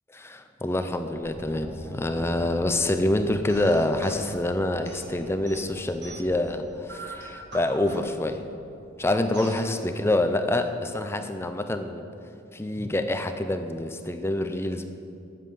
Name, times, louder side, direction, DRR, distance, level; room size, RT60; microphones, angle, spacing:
voice 1, 0.2-8.4 9.0-12.1 12.5-14.8, left 1 dB, 10° left, 8 dB, 0.5 m, -26 dB
sound 1, 1.1-10.3, equal, 15° right, 2.4 m, -47 dB
sound 2, 3.5-4.3 4.8-6.4 6.9-8.4 9.3-9.6, right 2 dB, 55° right, 1.9 m, -42 dB
8.6 x 7.6 x 7.2 m, 2.6 s
head